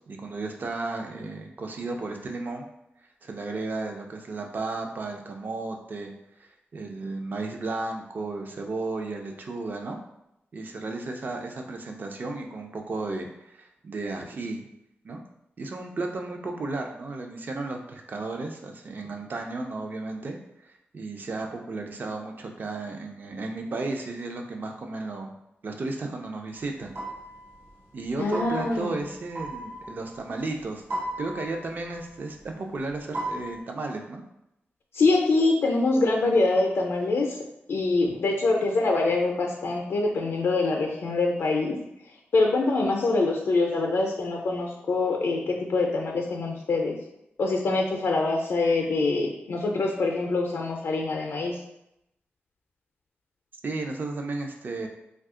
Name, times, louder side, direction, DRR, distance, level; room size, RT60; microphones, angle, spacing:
voice 1, 0.0-2.6 3.2-6.1 6.4-10.0 10.5-14.7 15.0-15.2 15.6-20.4 20.6-25.3 25.6-26.9 27.9-30.8 31.2-34.2 38.0-38.2 53.6-54.9, right 3 dB, 45° right, 3 dB, 0.4 m, -34 dB
sound 1, 26.5-30.6 30.9-32.6 32.9-33.6, right 1 dB, 85° right, 0.8 m, -37 dB
voice 2, 28.2-29.0 34.9-37.4 37.7-41.8 42.3-47.0 47.4-51.6, left 3 dB, 80° left, 0 dB, 0.4 m, -24 dB
2.7 x 2.3 x 3.6 m, 0.84 s
wide cardioid pair, 145°, 4 cm